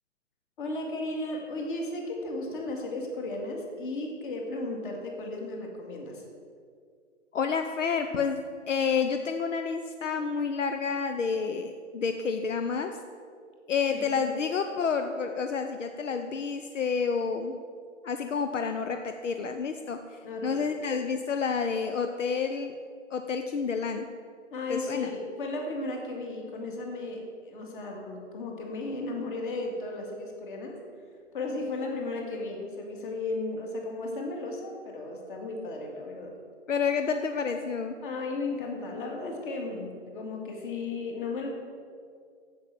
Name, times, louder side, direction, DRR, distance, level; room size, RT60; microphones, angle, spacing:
voice 1, 0.6-6.2 13.9-14.4 20.2-20.6 24.5-30.8 31.3-36.3 38.0-41.5, left 2 dB, 45° left, 1 dB, 2.3 m, -35 dB
voice 2, 7.3-8.4 8.7-12.9 13.7-17.6 18.0-22.7 23.1-24.1 24.7-25.1 36.7-37.9, left 5 dB, 75° left, 7 dB, 0.8 m, -29 dB
8.4 x 7.6 x 7.5 m, 2.2 s
hypercardioid pair, 145°, 37 cm